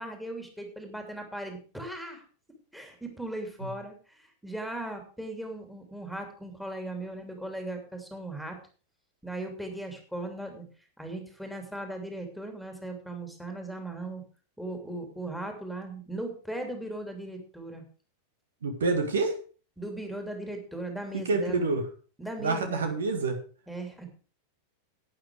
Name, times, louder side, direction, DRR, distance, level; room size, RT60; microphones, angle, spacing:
voice 1, 0.0-2.2 2.7-8.6 9.2-10.7 11.0-14.2 14.6-17.8 19.8-21.6 22.2-22.9 23.7-24.1, right 1 dB, ahead, 4 dB, 2.9 m, -38 dB
voice 2, 18.6-19.4 21.3-21.8 22.4-23.4, right 3 dB, 65° right, 6 dB, 2.0 m, -27 dB
11.5 x 9.2 x 4.9 m, 0.38 s
figure-of-eight pair, 90°, 0 cm